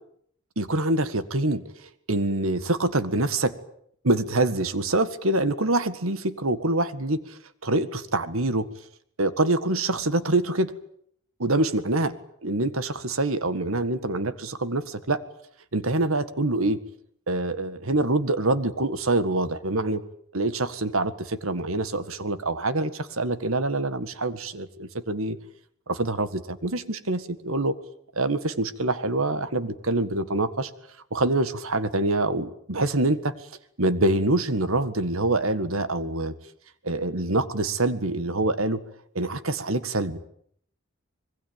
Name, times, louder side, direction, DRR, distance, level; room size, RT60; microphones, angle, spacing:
voice 1, 0.6-3.5 4.0-8.7 9.2-10.7 11.4-12.1 12.4-15.2 15.7-16.8 17.3-20.0 20.3-25.4 25.9-27.7 28.2-30.7 31.1-33.3 33.8-36.3 36.8-38.8 39.2-40.2, right 2 dB, 90° right, 13 dB, 1.8 m, -25 dB
25.5 x 21.5 x 8.9 m, 0.66 s
head